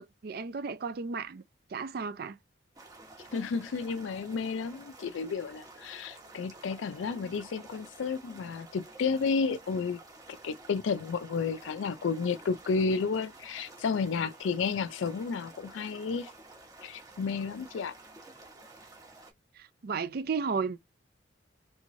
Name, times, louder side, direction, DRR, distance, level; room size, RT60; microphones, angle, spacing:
voice 1, 0.0-1.4 1.7-2.4 19.6-20.8, right 5 dB, 50° right, 0.4 m, -34 dB
sound 1, 2.8-19.3, right 2 dB, 20° right, 1.0 m, -51 dB
voice 2, 3.3-10.0 10.4-16.3 16.8-17.9, left 5 dB, 80° left, 0.4 m, -32 dB
3.4 x 3.1 x 2.5 m
head